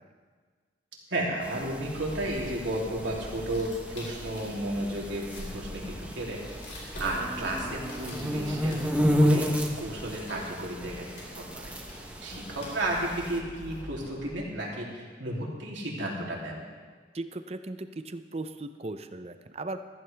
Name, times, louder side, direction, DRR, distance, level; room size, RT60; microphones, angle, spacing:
voice 1, 1.1-6.4 7.0-9.5 9.8-11.1 11.4-11.7 12.2-16.6, right 1 dB, 80° right, -3 dB, 3.0 m, -33 dB
sound 1, 1.4-13.4, equal, 5° right, 0.8 m, -32 dB
sound 2, 2.0-14.3, equal, 85° left, 4.6 m, -44 dB
voice 2, 17.1-19.9, right 2 dB, 35° right, 9 dB, 0.6 m, -37 dB
15.0 x 14.5 x 3.4 m, 1.5 s
head